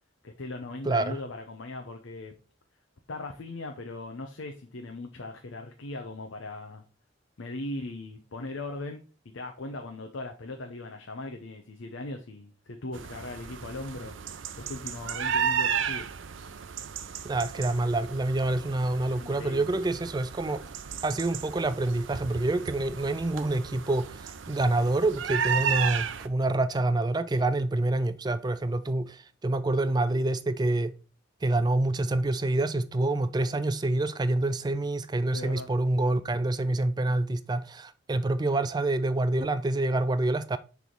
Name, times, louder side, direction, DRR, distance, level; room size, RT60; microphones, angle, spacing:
voice 1, 0.2-2.3 3.1-6.8 7.4-9.0 9.3-14.2 14.6-16.1 19.1-19.7 35.3-35.7, left 2 dB, 80° left, 0.7 m, -39 dB
voice 2, 0.8-1.2 17.2-20.6 21.0-30.9 31.4-40.6, right 2 dB, 20° right, 0.4 m, -27 dB
sound 1, 12.9-26.3, right 7 dB, 75° right, 0.6 m, -34 dB
6.2 x 3.5 x 4.5 m
head